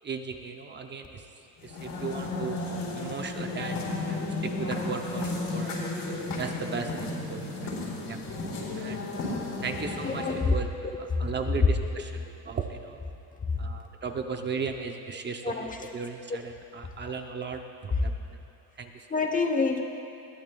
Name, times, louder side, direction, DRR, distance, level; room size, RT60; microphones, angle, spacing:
voice 1, 0.0-1.2 1.6-2.6 3.0-5.9 6.4-7.8 8.0-8.2 8.8-9.1 9.6-13.0 13.6-18.4 18.8-19.1, right 5 dB, 25° right, 5 dB, 0.6 m, -36 dB
sound 1, 1.6-10.5, left 2 dB, 50° left, 3.4 m, -33 dB
voice 2, 10.0-10.5 11.2-11.3 15.4-15.9 19.1-19.8, left 4 dB, 20° left, 4 dB, 0.9 m, -27 dB
21.0 x 15.0 x 2.3 m, 2.8 s
cardioid pair, 150°, 43 cm